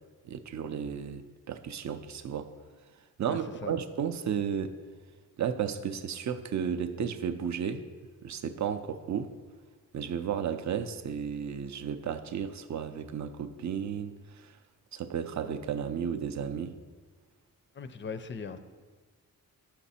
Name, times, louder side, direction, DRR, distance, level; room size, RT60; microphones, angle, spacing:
voice 1, 0.2-2.5 3.2-4.7 5.4-7.9 8.2-9.3 9.9-14.6 14.9-16.8, right 8 dB, 55° right, 10 dB, 0.4 m, -33 dB
voice 2, 3.2-3.8 17.7-18.6, left 5 dB, 35° left, 11 dB, 0.4 m, -39 dB
5.9 x 5.9 x 4.2 m, 1.4 s
wide cardioid pair, 135°, 35 cm